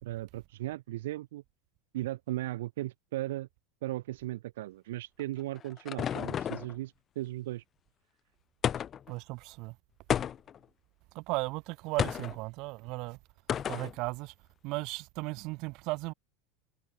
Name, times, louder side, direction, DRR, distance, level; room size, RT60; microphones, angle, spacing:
voice 1, 0.0-1.4 1.9-3.5 3.8-7.6, right 16 dB, 75° right, 1.8 m, -37 dB
sound 1, 5.2-6.8 8.6-9.1 10.1-10.6 12.0-12.4 13.5-13.9, left 9 dB, 35° left, 0.3 m, -32 dB
voice 2, 9.1-9.7 11.1-13.2 13.7-14.3 14.6-16.1, right 24 dB, 55° right, 1.4 m, -36 dB
hypercardioid pair, 105°, 0 cm